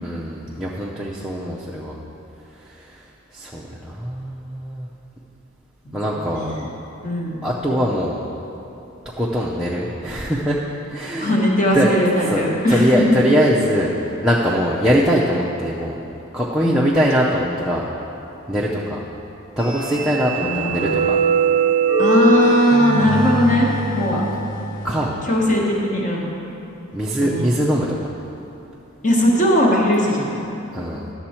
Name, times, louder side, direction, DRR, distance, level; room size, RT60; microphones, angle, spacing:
voice 1, 0.0-2.0 2.6-3.0 3.3-4.9 5.9-6.5 7.4-8.2 9.2-10.6 10.9-11.3 11.7-11.9 12.2-12.4 12.7-16.0 16.3-17.9 18.5-19.0 19.6-21.2 24.1-24.2 24.8-25.1 26.9-28.0 30.7-31.1, equal, ahead, -7 dB, 0.5 m, -22 dB
voice 2, 5.8-6.7 7.0-7.4 11.1-13.2 16.6-17.0 20.4-21.1 22.0-24.2 25.3-26.3 27.2-27.5 29.0-30.5, equal, 35° left, -3 dB, 1.3 m, -19 dB
sound 1, 19.6-24.9, right 3 dB, 55° left, 2.3 m, -21 dB
11.0 x 7.0 x 4.3 m, 3.0 s
head